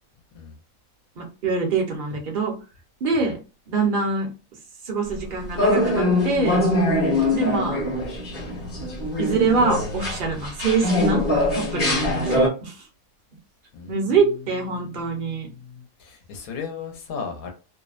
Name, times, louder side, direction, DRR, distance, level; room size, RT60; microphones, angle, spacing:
voice 1, 1.2-2.5 3.0-3.4 3.7-4.3 4.8-6.7 7.3-7.8 8.7-8.9 9.2-11.2 11.5-12.9 13.9-15.5, right 4 dB, 50° right, 2 dB, 0.7 m, -24 dB
sound 1, 5.6-12.5, left 1 dB, 40° left, 1.0 m, -23 dB
voice 2, 13.7-14.3 14.7-17.5, left 6 dB, 80° left, 3 dB, 1.1 m, -37 dB
2.6 x 2.0 x 2.3 m, 0.32 s
omnidirectional pair, 1.5 m